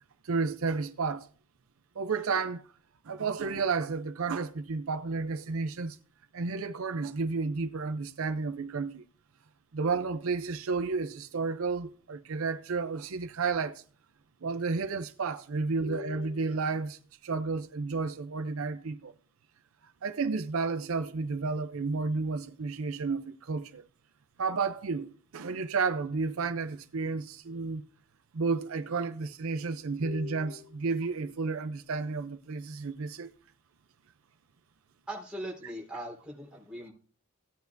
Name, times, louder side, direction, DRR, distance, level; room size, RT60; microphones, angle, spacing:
voice 1, 0.2-1.3 2.0-2.6 3.0-6.0 6.3-9.0 9.7-13.8 14.4-19.1 20.0-23.8 24.4-27.8 28.3-33.3, right 4 dB, 70° right, 0.6 m, -32 dB
voice 2, 35.1-36.9, right 1 dB, 5° right, 4.2 m, -40 dB
16.5 x 9.1 x 2.6 m
head